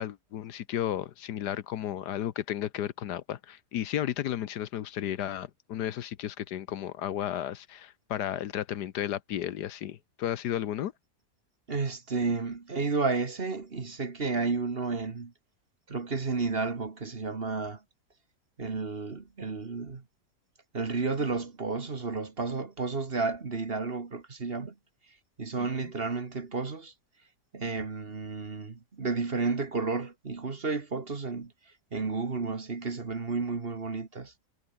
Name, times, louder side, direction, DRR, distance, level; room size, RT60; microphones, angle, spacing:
voice 1, 0.0-10.9 25.6-25.7, left 11 dB, 75° left, 1.4 m, -33 dB
voice 2, 11.7-15.3 15.9-17.8 18.6-20.0 20.7-24.7 25.4-26.9 27.5-31.5 31.9-34.3, right 4 dB, 35° right, 1.7 m, -32 dB
omnidirectional pair, 1.8 m